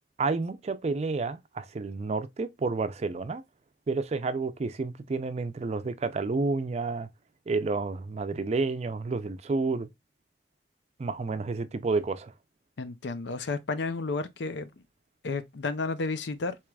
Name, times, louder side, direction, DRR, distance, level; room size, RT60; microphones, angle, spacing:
voice 1, 0.2-3.4 3.9-7.1 7.5-9.9 11.0-12.3, right 3 dB, 40° right, 0.4 m, -30 dB
voice 2, 12.8-14.7 15.2-16.6, left 3 dB, 80° left, 0.5 m, -32 dB
4.6 x 3.0 x 2.3 m
head